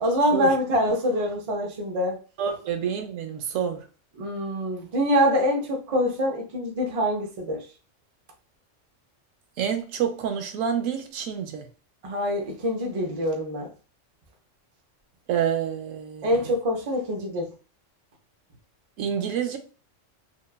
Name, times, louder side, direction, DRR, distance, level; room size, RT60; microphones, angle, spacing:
voice 1, 0.0-2.2 4.2-7.6 12.0-13.7 16.2-17.5, equal, 40° right, 0.5 m, -25 dB
voice 2, 2.4-3.9 9.6-11.7 15.3-16.3 19.0-19.6, right 8 dB, 90° right, 1.0 m, -28 dB
2.9 x 2.2 x 2.2 m
omnidirectional pair, 1.3 m